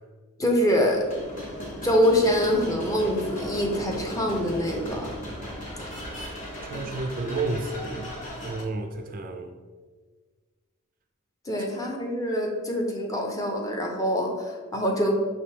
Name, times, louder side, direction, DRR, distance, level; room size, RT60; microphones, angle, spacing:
voice 1, 0.4-1.0 1.8-5.1 5.7-6.0 6.7-6.8 11.5-15.1, equal, 15° left, 1 dB, 0.6 m, -25 dB
sound 1, 0.7-8.6, equal, 40° left, 1.1 m, -36 dB
voice 2, 6.6-9.5, right 3 dB, 40° right, 5 dB, 0.3 m, -31 dB
5.8 x 3.3 x 2.7 m, 1.5 s
head